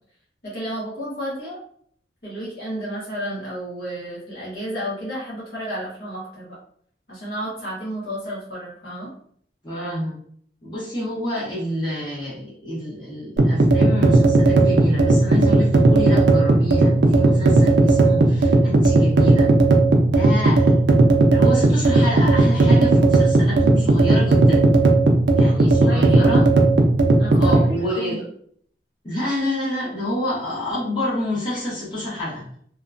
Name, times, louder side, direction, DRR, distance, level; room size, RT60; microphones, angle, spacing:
voice 1, 0.4-1.6 2.2-6.6 7.1-9.1 25.9-26.4 27.2-28.2, equal, 60° left, -8 dB, 1.2 m, -32 dB
voice 2, 9.6-10.2 10.6-19.5 20.0-20.8 21.3-24.7 25.4-26.5 27.4-28.2 29.0-32.4, left 1 dB, 25° left, -10 dB, 1.3 m, -27 dB
sound 1, 13.4-27.7, right 2 dB, 75° right, 0.5 m, -15 dB
2.8 x 2.3 x 2.5 m, 0.62 s
head